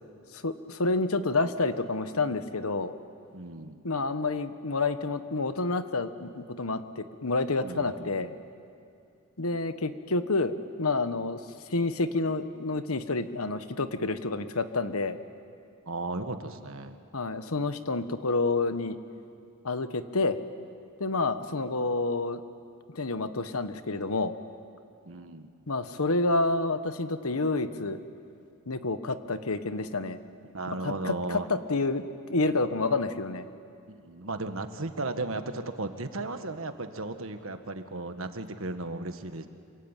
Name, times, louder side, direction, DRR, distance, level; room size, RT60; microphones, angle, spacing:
voice 1, 0.3-2.9 3.8-8.3 9.4-11.4 11.7-15.2 17.1-19.0 19.6-20.4 21.0-22.4 22.9-24.3 25.7-28.0 28.7-30.2 30.8-32.0 32.3-33.5, left 3 dB, 75° left, 10 dB, 1.3 m, -29 dB
voice 2, 3.3-3.8 7.6-8.1 15.9-17.0 25.1-25.5 30.5-31.5 33.9-39.5, right 2 dB, 65° right, 8 dB, 1.6 m, -35 dB
26.5 x 24.5 x 9.1 m, 2.5 s
head